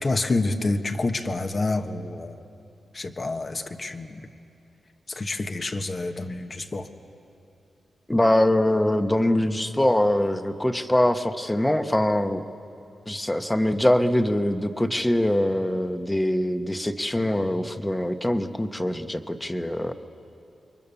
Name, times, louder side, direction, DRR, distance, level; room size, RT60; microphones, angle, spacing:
voice 1, 0.0-2.4 2.9-4.2 5.1-6.9, left 2 dB, 40° left, 6 dB, 1.4 m, -28 dB
voice 2, 8.1-12.4 13.1-19.9, left 1 dB, 10° left, 8 dB, 1.2 m, -23 dB
28.5 x 23.0 x 7.1 m, 2.7 s
cardioid pair, 85°, 0 cm